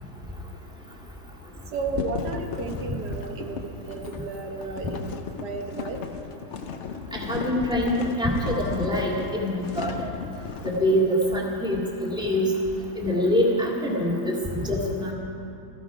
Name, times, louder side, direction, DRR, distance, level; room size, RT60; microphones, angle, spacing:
voice 1, 1.7-6.0, right 4 dB, 85° right, 3 dB, 1.7 m, -33 dB
sound 1, 1.9-10.9, left 6 dB, 55° left, 1.0 m, -35 dB
voice 2, 7.1-10.1 10.6-12.5 13.0-14.3 14.7-15.1, equal, 5° right, -3 dB, 2.0 m, -24 dB
17.5 x 14.0 x 5.0 m, 2.8 s
omnidirectional pair, 1.7 m